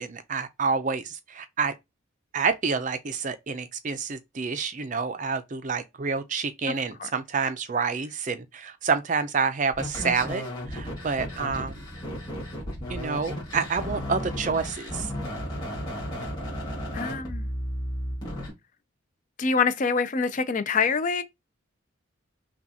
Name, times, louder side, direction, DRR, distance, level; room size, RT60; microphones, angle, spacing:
voice 1, 0.0-1.7 2.3-11.8 12.9-15.1, right 5 dB, 35° right, 0.4 m, -28 dB
sound 1, 9.7-18.5, equal, 20° left, 1.7 m, -34 dB
voice 2, 16.9-17.5 19.4-21.2, left 5 dB, 40° left, 0.4 m, -25 dB
5.7 x 2.3 x 2.7 m
head